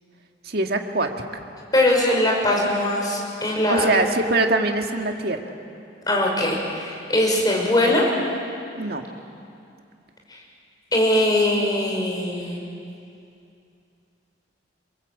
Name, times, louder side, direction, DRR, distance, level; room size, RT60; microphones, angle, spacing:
voice 1, 0.4-1.4 3.7-5.4 8.8-9.1, right 2 dB, 55° right, 4 dB, 1.9 m, -23 dB
voice 2, 1.7-3.9 6.1-8.1 10.9-12.6, left 1 dB, 20° left, -2 dB, 5.5 m, -21 dB
27.0 x 22.0 x 8.3 m, 2.6 s
head